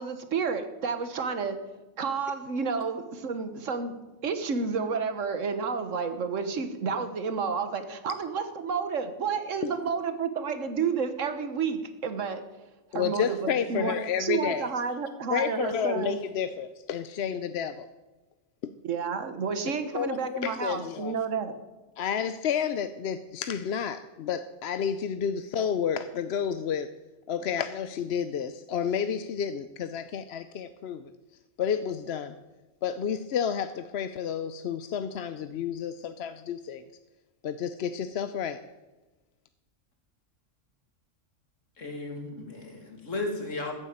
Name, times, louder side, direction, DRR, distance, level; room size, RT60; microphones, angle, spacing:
voice 1, 0.0-1.6 2.0-3.9 4.2-12.4 12.9-16.2 18.8-21.5, right 5 dB, 85° right, 9 dB, 1.6 m, -30 dB
voice 2, 12.9-14.7 15.3-17.9 18.6-18.7 19.9-21.1 22.0-26.9 27.3-31.1 31.6-32.3 32.8-36.8 37.4-38.6, left 8 dB, 65° left, 11 dB, 0.8 m, -30 dB
voice 3, 41.8-43.8, left 2 dB, 90° left, 2 dB, 2.9 m, -35 dB
14.0 x 8.2 x 8.9 m, 1.1 s
omnidirectional pair, 1.3 m